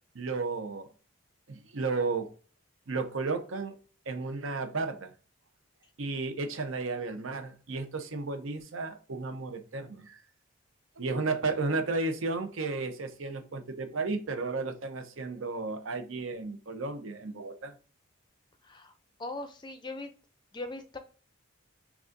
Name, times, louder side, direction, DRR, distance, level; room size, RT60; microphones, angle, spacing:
voice 1, 0.1-0.9 1.5-2.3 2.9-3.8 4.1-5.1 6.0-10.2 11.0-17.7, right 3 dB, 70° right, 0.7 m, -33 dB
voice 2, 19.2-20.1 20.5-21.0, left 2 dB, 20° left, 0.4 m, -39 dB
6.0 x 2.4 x 2.6 m
head